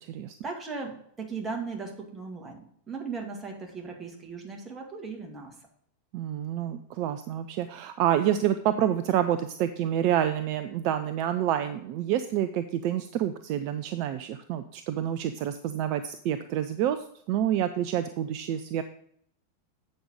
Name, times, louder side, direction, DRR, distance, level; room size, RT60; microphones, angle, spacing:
voice 1, 0.4-5.6, right 4 dB, 15° right, 0 dB, 2.1 m, -37 dB
voice 2, 6.1-17.0 17.3-18.8, right 11 dB, 45° right, 10 dB, 0.4 m, -28 dB
7.8 x 5.3 x 6.3 m, 0.67 s
figure-of-eight pair, 90°, 0 cm